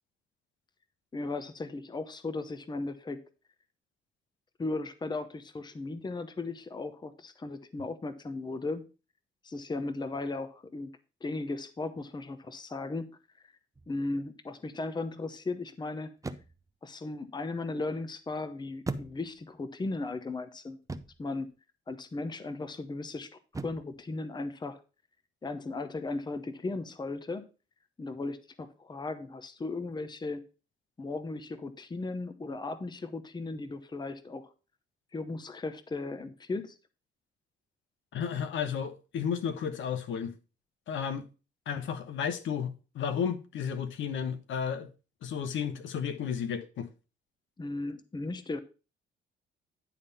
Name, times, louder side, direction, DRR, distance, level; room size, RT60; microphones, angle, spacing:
voice 1, 1.1-3.2 4.6-8.9 9.4-10.9 11.2-13.1 13.9-16.1 16.8-20.8 21.2-21.5 21.9-23.3 23.6-24.8 25.4-27.5 28.0-30.4 31.0-34.5 35.1-36.8 47.6-48.6, left 3 dB, 20° left, 0.8 m, -36 dB
sound 1, 13.8-14.1 16.2-16.8 18.9-19.6 20.9-21.3 23.5-24.0, right 3 dB, 15° right, 0.6 m, -39 dB
voice 2, 38.1-40.3 40.9-41.3 41.7-44.9 45.2-46.9, left 7 dB, 75° left, 1.1 m, -33 dB
10.5 x 3.6 x 5.6 m
cardioid pair, 90°, 20 cm